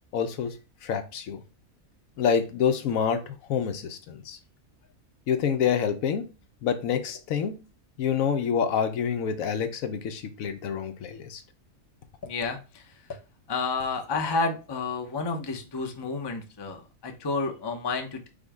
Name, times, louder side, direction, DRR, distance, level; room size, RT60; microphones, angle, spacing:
voice 1, 0.1-0.5 0.8-1.4 2.2-4.4 5.3-6.2 6.6-7.6 8.0-11.4, left 7 dB, 75° left, 1.1 m, -27 dB
voice 2, 12.2-12.8 13.5-18.3, left 4 dB, 30° left, 0.5 m, -30 dB
5.2 x 2.1 x 4.7 m
omnidirectional pair, 1.5 m